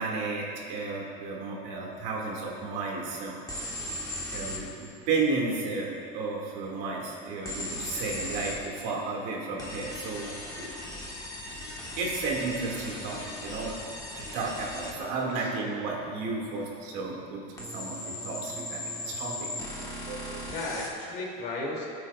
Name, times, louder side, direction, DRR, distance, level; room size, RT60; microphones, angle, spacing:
voice 1, 0.0-3.4 4.3-10.3 10.6-10.7 11.4-13.7 14.2-19.5 20.1-20.5, right 3 dB, 65° right, -2 dB, 2.2 m, -33 dB
sound 1, 3.5-4.6 7.5-8.6 9.6-15.0 17.6-20.9, left 1 dB, 20° left, 1.4 m, -38 dB
voice 2, 15.4-16.1 20.5-21.9, left 2 dB, 55° left, -2 dB, 2.8 m, -36 dB
19.0 x 8.7 x 2.4 m, 2.7 s
cardioid pair, 160°, 20 cm